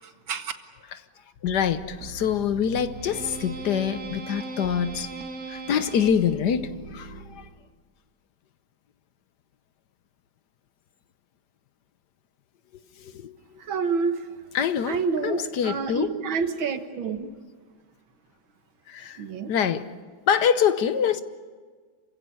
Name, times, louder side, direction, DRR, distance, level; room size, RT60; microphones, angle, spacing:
voice 1, 1.4-5.1 5.5-7.4 13.0-13.3 14.5-15.0 15.2-16.1 18.9-19.2 19.5-19.8 20.3-21.2, left 8 dB, 65° left, 1.4 m, -25 dB
sound 1, 1.5-7.7, right 3 dB, 50° right, 2.0 m, -39 dB
voice 2, 13.6-14.3 14.9-17.3 19.2-19.5, right 5 dB, 90° right, 2.2 m, -28 dB
28.0 x 16.0 x 9.7 m
omnidirectional pair, 2.1 m